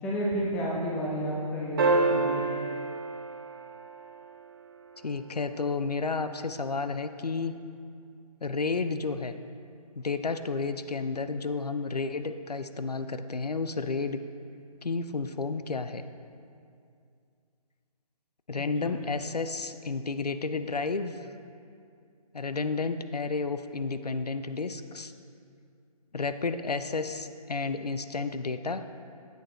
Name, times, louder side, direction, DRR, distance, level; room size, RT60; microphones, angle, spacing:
voice 1, 0.0-2.4 18.6-18.9, equal, 5° left, -4 dB, 0.6 m, -31 dB
sound 1, 1.8-4.3 6.5-6.6, right 3 dB, 35° right, 0.9 m, -28 dB
voice 2, 5.0-7.5 8.4-9.3 10.0-14.2 14.8-16.0 18.5-21.3 22.3-25.1 26.1-28.8, left 4 dB, 90° left, 10 dB, 0.5 m, -31 dB
10.0 x 8.2 x 3.3 m, 2.4 s
figure-of-eight pair, 150°, 20 cm